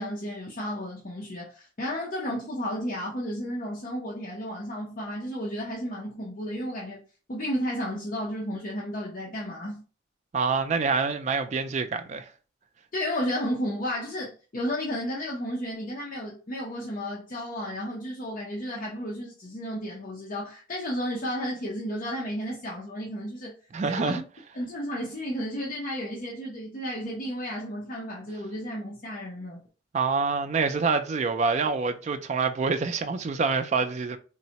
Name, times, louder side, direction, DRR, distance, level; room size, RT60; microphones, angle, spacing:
voice 1, 0.0-7.0 7.3-9.8 12.9-23.5 24.0-24.2 24.5-29.6, equal, 45° left, 0.6 m, -33 dB
voice 2, 10.3-12.3 23.7-24.2 29.9-34.2, right 4 dB, 35° right, 0.3 m, -26 dB
3.9 x 2.1 x 2.8 m
head